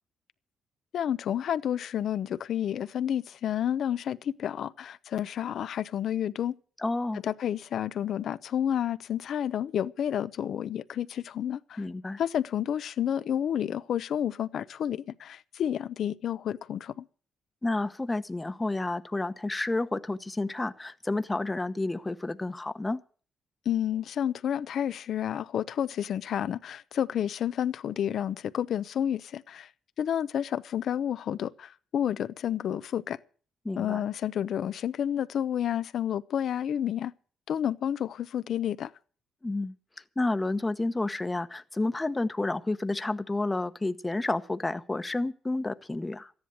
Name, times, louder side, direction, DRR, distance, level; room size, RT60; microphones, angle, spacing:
voice 1, 0.9-6.6 7.2-11.8 12.2-17.1 23.7-29.7 30.0-33.2 33.8-37.1 37.5-38.9, left 9 dB, 65° left, 0.7 m, -30 dB
voice 2, 6.8-7.2 11.8-12.2 17.6-23.0 33.6-34.0 39.4-39.7 40.2-46.3, left 2 dB, 15° left, 1.0 m, -30 dB
13.5 x 10.5 x 8.0 m
cardioid pair, 90°, 0 cm